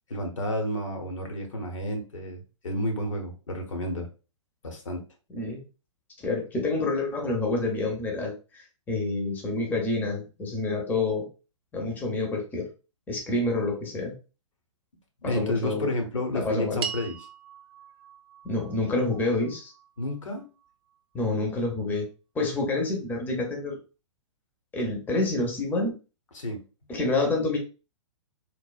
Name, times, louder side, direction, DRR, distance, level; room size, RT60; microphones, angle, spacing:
voice 1, 0.1-4.1 4.6-5.0 15.2-17.2 20.0-20.5 26.3-26.6, left 1 dB, 75° left, 4 dB, 0.8 m, -31 dB
voice 2, 6.2-11.3 11.7-12.7 13.1-14.1 15.2-15.9 16.3-16.8 18.4-19.7 21.1-22.1 22.3-23.8 24.7-25.9 26.9-27.6, left 2 dB, 10° left, 1 dB, 0.6 m, -28 dB
sound 1, 16.8-21.3, right 8 dB, 50° right, 0.5 m, -41 dB
3.1 x 2.1 x 2.4 m, 0.33 s
figure-of-eight pair, 115°, 16 cm